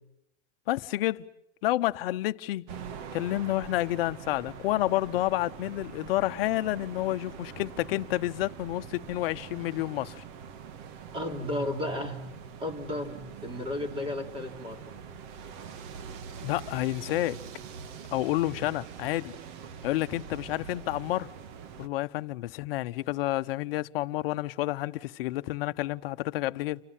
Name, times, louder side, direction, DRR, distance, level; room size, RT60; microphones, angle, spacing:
voice 1, 0.7-1.3 1.6-2.7 3.1-10.2 16.4-17.4 18.1-19.4 19.8-21.3 21.8-26.8, left 16 dB, 50° left, 1.1 m, -29 dB
sound 1, 2.7-21.9, right 7 dB, 40° right, 1.8 m, -44 dB
voice 2, 11.1-12.3 12.6-14.9, left 1 dB, 15° right, 3.8 m, -33 dB
29.5 x 25.5 x 7.4 m
supercardioid pair, 155°, 36 cm